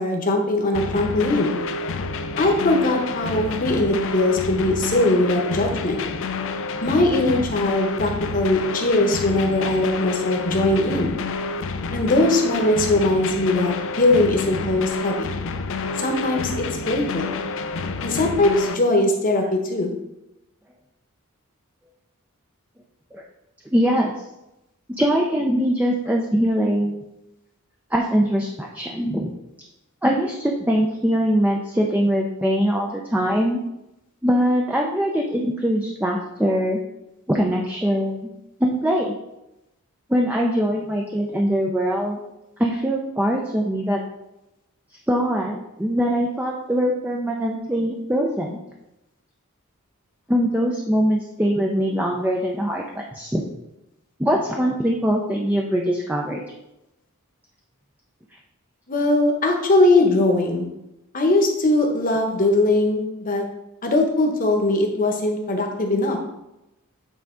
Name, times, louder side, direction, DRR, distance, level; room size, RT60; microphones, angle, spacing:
voice 1, 0.0-1.6 2.4-6.0 6.8-11.1 11.9-15.3 16.0-17.4 18.0-19.9 58.9-60.7 61.1-63.4 63.8-66.2, left 2 dB, 40° left, 3 dB, 1.0 m, -20 dB
sound 1, 0.7-18.7, left 3 dB, 60° left, 0.5 m, -29 dB
voice 2, 23.7-24.1 24.9-27.0 27.9-29.3 30.0-33.6 34.2-36.8 37.3-38.3 38.6-39.1 40.1-42.2 42.6-44.0 45.1-48.6 50.3-53.4 54.2-56.4, equal, 5° right, 0 dB, 0.5 m, -22 dB
8.3 x 3.7 x 3.7 m, 0.91 s
head